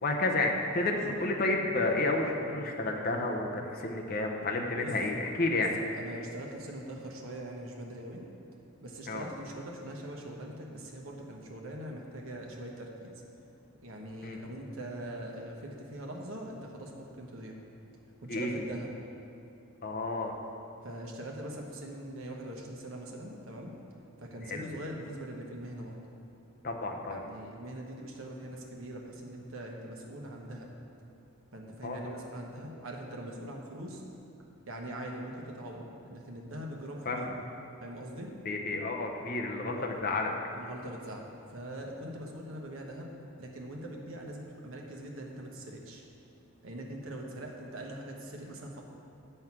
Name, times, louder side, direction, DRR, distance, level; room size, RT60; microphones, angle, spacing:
voice 1, 0.0-5.7 9.1-9.3 14.2-14.4 18.2-18.6 19.8-20.3 24.5-24.7 26.6-27.2 31.8-32.1 37.0-37.4 38.4-40.3, left 2 dB, 45° left, 1 dB, 0.7 m, -31 dB
voice 2, 5.9-8.2 8.8-13.2 13.8-17.6 18.2-18.9 20.8-23.7 24.2-26.0 27.1-30.7 31.5-34.0 34.7-37.2 37.8-38.3 39.7-40.0 40.5-43.1 43.4-46.0 46.6-48.8, right 1 dB, 70° right, 0 dB, 1.1 m, -42 dB
7.8 x 5.5 x 5.9 m, 2.6 s
head